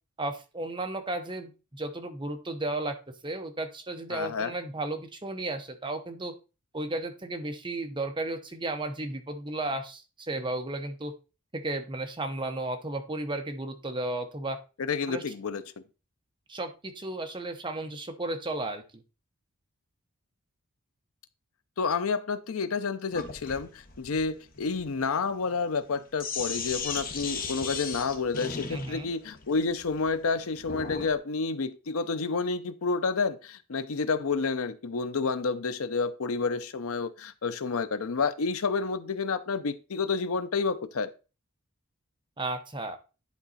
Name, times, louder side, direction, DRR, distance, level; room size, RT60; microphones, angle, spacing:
voice 1, 0.2-3.0 3.2-6.3 6.7-11.1 11.5-14.6 15.1-15.2 16.5-19.0 28.7-29.1 42.4-43.0, right 2 dB, 20° right, 6 dB, 0.9 m, -34 dB
voice 2, 4.1-4.5 14.8-15.6 21.8-41.1, left 4 dB, 65° left, 12 dB, 0.6 m, -29 dB
Sink (filling or washing), 23.1-31.1, left 5 dB, 40° left, 1.1 m, -37 dB
10.5 x 4.0 x 4.1 m, 0.32 s
head